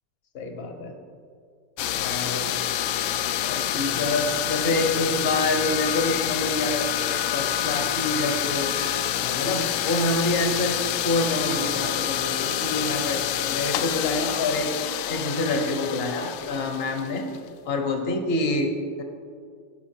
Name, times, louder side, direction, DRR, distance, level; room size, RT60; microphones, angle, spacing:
voice 1, 0.3-0.9 1.9-2.6 3.4-8.7 9.2-14.7 15.1-17.3 17.6-19.0, left 2 dB, 40° left, 4 dB, 0.9 m, -27 dB
sound 1, 1.8-17.5, left 11 dB, 75° left, 1.3 m, -27 dB
17.0 x 5.9 x 4.5 m, 2.2 s
omnidirectional pair, 2.4 m